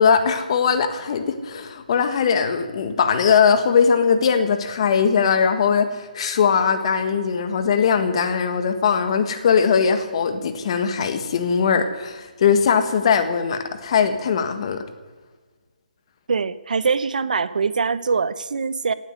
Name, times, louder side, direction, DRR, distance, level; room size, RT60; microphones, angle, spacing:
voice 1, 0.0-14.8, left 6 dB, 40° left, 9 dB, 1.7 m, -20 dB
voice 2, 16.3-18.9, right 5 dB, 65° right, 16 dB, 0.9 m, -23 dB
18.0 x 8.5 x 9.4 m, 1.4 s
hypercardioid pair, 160°, 5 cm